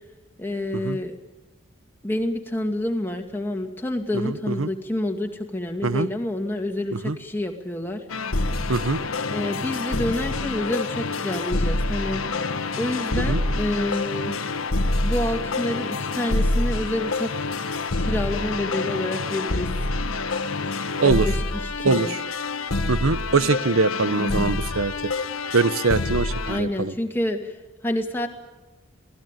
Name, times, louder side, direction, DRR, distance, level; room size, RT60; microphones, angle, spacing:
voice 1, 0.4-1.2 2.0-8.0 9.3-12.2 12.8-14.3 15.0-17.5 18.0-19.7 20.7-22.2 24.2-24.5 26.5-27.5 27.8-28.3, left 1 dB, 10° left, 3 dB, 2.3 m, -28 dB
voice 2, 4.2-4.7 5.8-6.1 6.9-7.2 8.7-9.0 13.3-13.4 21.0-21.3 21.8-22.2 22.9-25.1 25.5-26.9, right 4 dB, 80° right, 15 dB, 0.9 m, -23 dB
sound 1, 8.1-26.6, left 2 dB, 85° left, 1.4 m, -27 dB
28.0 x 18.5 x 9.2 m, 1.1 s
head